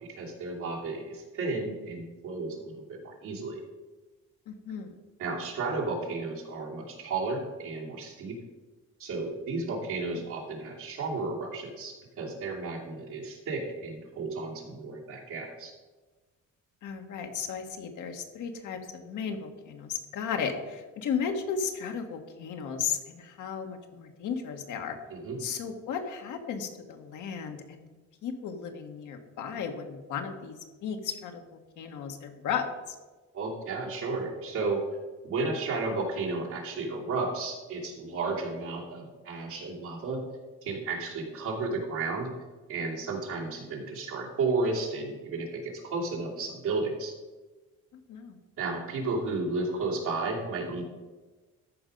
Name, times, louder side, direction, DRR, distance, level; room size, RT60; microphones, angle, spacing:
voice 1, 0.2-3.6 5.2-8.4 9.0-15.7 25.1-25.4 33.3-34.8 35.2-40.2 40.6-42.3 42.7-47.1 48.6-50.8, right 3 dB, 85° right, -4 dB, 2.8 m, -33 dB
voice 2, 4.5-4.9 10.1-10.2 16.8-25.0 25.4-27.8 28.2-32.9 47.9-48.4, left 6 dB, 80° left, 5 dB, 1.3 m, -35 dB
13.5 x 5.1 x 5.3 m, 1.3 s
cardioid pair, 90°, 30 cm